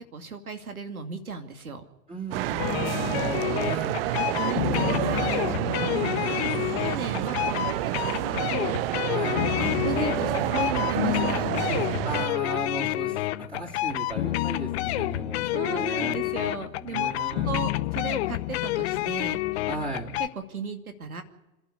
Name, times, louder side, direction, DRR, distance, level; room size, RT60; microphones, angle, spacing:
voice 1, 0.1-1.8 4.2-6.2 6.8-8.8 9.6-12.1 15.5-19.6 20.2-21.2, right 4 dB, 80° right, 7 dB, 2.6 m, -36 dB
voice 2, 2.1-4.0 7.2-7.3 9.1-9.5 12.0-16.2 16.9-17.6 19.7-20.1, right 2 dB, 15° right, -2 dB, 4.0 m, -36 dB
sound 1, 2.3-12.3, right 15 dB, 45° right, 0.7 m, -29 dB
sound 2, 2.6-20.3, left 16 dB, 45° left, 0.8 m, -29 dB
27.0 x 12.0 x 9.9 m, 1.0 s
figure-of-eight pair, 100°, 42 cm